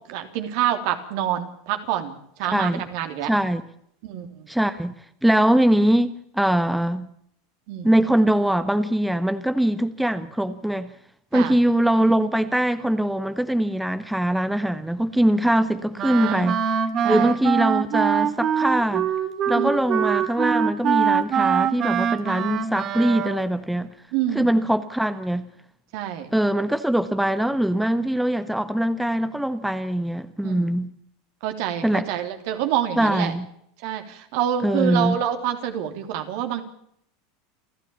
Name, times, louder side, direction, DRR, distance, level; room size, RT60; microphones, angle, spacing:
voice 1, 0.0-3.3 4.0-4.5 7.7-7.9 11.3-11.6 16.1-16.5 17.0-17.3 19.5-19.7 24.1-24.5 25.9-26.3 30.4-30.7 31.4-33.3 33.8-36.6, right 10 dB, 65° right, 3.3 m, -27 dB
voice 2, 2.4-2.8 3.3-3.6 4.5-4.9 5.2-7.1 7.8-10.9 11.3-16.6 17.0-19.1 19.5-23.9 24.3-25.5 26.3-30.9 31.8-32.1 33.0-33.5 34.6-35.2, right 1 dB, 5° right, 1.3 m, -22 dB
Wind instrument woodwind instrument, 16.0-23.5, right 8 dB, 40° right, 2.3 m, -23 dB
29.5 x 12.5 x 7.1 m
hypercardioid pair, 95°, 0 cm